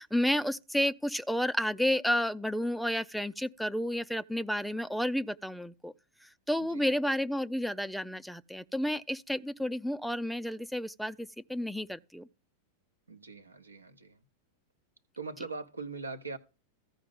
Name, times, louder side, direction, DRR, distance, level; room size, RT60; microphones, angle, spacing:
voice 1, 0.0-5.9 6.2-12.3, equal, ahead, 0.4 m, -31 dB
voice 2, 13.1-14.2 15.2-16.4, right 3 dB, 80° right, 0.8 m, -41 dB
15.0 x 5.0 x 3.6 m
figure-of-eight pair, 90°, 0 cm